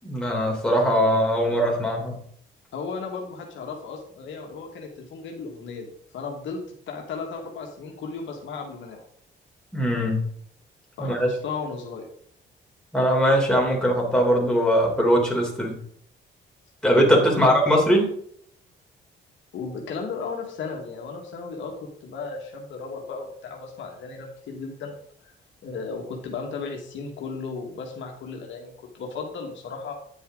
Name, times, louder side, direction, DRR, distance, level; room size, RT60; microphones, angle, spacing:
voice 1, 0.0-2.2 9.7-10.2 11.0-11.3 12.9-15.8 16.8-18.1, equal, 5° left, -2 dB, 3.8 m, -21 dB
voice 2, 2.7-5.9 6.1-6.6 6.9-9.0 11.0-12.1 17.1-17.6 19.5-24.9 25.2-25.3 25.6-29.9, left 4 dB, 70° left, 1 dB, 1.9 m, -35 dB
9.7 x 7.1 x 3.9 m, 0.63 s
cardioid pair, 90°, 20 cm